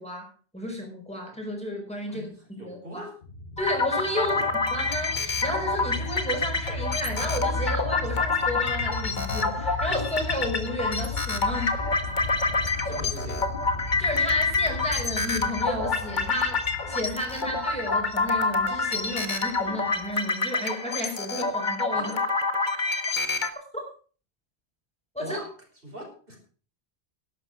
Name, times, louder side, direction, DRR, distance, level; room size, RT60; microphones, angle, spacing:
voice 1, 0.0-3.0 3.6-4.4 4.7-11.8 14.0-16.5 16.9-22.2 23.1-23.2 25.1-25.4, equal, 5° left, 0 dB, 5.1 m, -32 dB
voice 2, 2.1-3.1 4.2-4.5 12.8-13.4 21.9-22.2 25.2-25.5 25.8-26.4, equal, 60° right, 0 dB, 5.5 m, -40 dB
sound 1, 3.2-20.2, left 3 dB, 75° left, 1.3 m, -36 dB
sound 2, 3.6-23.5, left 3 dB, 50° left, 1.7 m, -27 dB
12.0 x 11.5 x 5.9 m, 0.40 s
omnidirectional pair, 1.1 m